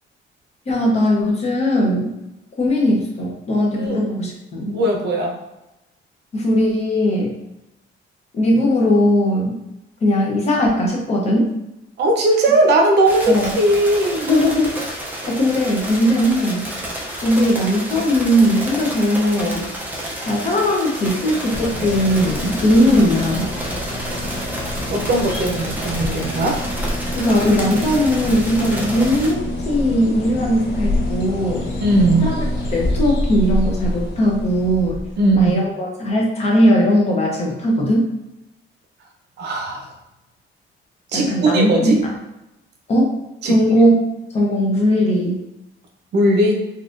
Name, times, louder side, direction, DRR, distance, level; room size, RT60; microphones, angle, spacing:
voice 1, 0.7-2.2 2.6-4.8 6.3-7.4 8.3-9.6 10.0-11.6 13.3-13.5 14.2-16.7 17.2-19.7 20.3-23.5 27.1-31.7 32.2-32.4 32.7-35.0 35.3-38.1 41.1-42.1 42.9-43.2 43.4-43.9 44.3-45.4, equal, 30° left, -2 dB, 0.7 m, -18 dB
voice 2, 4.7-5.3 12.0-14.3 24.1-24.2 24.9-26.6 31.8-32.2 35.2-35.6 39.4-39.9 41.1-42.0 43.4-43.6 46.1-46.6, right 1 dB, 55° right, 1 dB, 0.7 m, -18 dB
sound 1, 13.1-29.3, right 1 dB, 10° right, 0.5 m, -30 dB
sound 2, 21.5-35.5, left 1 dB, 65° left, 0.7 m, -26 dB
4.0 x 2.4 x 2.5 m, 0.95 s
cardioid pair, 175°, 21 cm